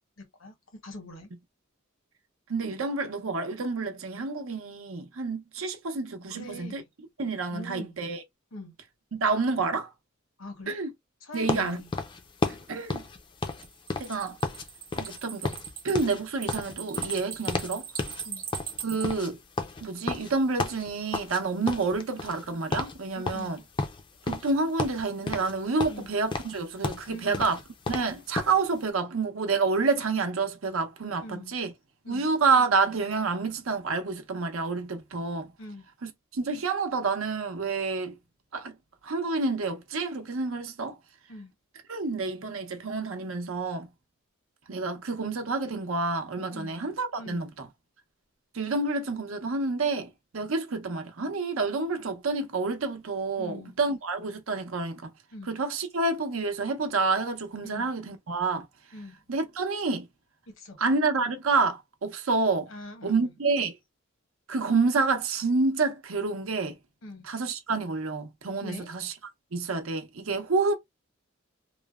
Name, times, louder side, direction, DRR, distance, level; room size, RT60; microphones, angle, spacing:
voice 1, 0.2-1.3 6.3-6.9 7.5-8.0 8.5-8.7 10.4-10.8 11.2-11.9 18.2-18.5 23.2-23.5 25.9-26.1 27.1-27.5 31.2-31.5 32.0-32.3 35.6-35.9 41.3-41.5 46.5-46.8 47.2-47.4 53.4-53.7 55.3-55.5 57.6-57.9 58.9-59.2 60.5-60.8 62.7-63.3 67.0-67.3 68.6-68.9, left 1 dB, 70° left, 0.9 m, -43 dB
voice 2, 2.5-6.8 7.2-8.2 9.1-9.9 10.7-10.9 11.3-11.8 12.7-13.0 14.0-14.4 14.9-15.5 15.8-17.9 18.8-19.4 19.8-23.6 24.3-27.6 27.9-31.7 32.1-35.5 36.0-38.1 38.5-38.7 39.0-41.0 41.9-43.9 44.7-47.7 48.5-55.1 55.5-58.7 59.3-60.1 60.8-62.7 63.0-63.8 64.5-66.8 67.2-69.1 69.5-70.8, right 4 dB, 85° right, 0.7 m, -28 dB
sound 1, 11.5-14.7 14.9-15.2 15.4-17.7 18.0-18.2 18.5-21.4 21.7-22.5 22.7-23.0 23.3-24.5 24.8-25.5 25.8-28.6, left 3 dB, 25° left, 0.4 m, -32 dB
sound 2, 13.5-19.1, right 8 dB, 45° right, 0.9 m, -39 dB
3.1 x 2.1 x 2.2 m
head